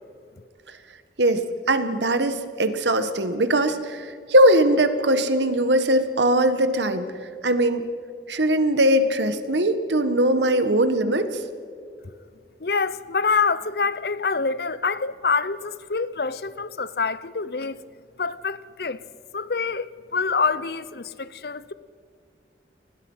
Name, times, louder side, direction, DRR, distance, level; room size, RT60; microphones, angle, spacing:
voice 1, 1.2-7.1 7.4-7.8 8.3-11.4, right 1 dB, 80° right, 1.5 m, -20 dB
voice 2, 12.6-17.8 18.2-19.0 19.3-21.7, left 4 dB, 60° left, 0.7 m, -26 dB
29.5 x 20.5 x 5.6 m
head